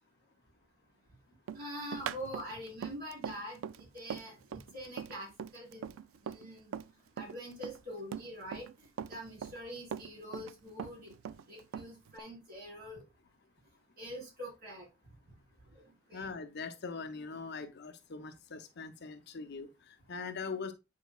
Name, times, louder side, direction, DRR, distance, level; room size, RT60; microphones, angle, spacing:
voice 1, 1.5-5.9 6.2-6.7 7.2-8.7 9.1-11.1 11.5-13.0 14.0-14.9 15.7-15.8 16.1-16.3, equal, 50° right, 4.4 m, -45 dB
Run, 1.5-6.9 7.2-8.7 9.0-10.5 10.8-12.2, right 8 dB, 80° right, 0.3 m, -41 dB
voice 2, 16.1-20.7, left 4 dB, 55° left, 0.7 m, -42 dB
9.1 x 4.7 x 2.3 m
head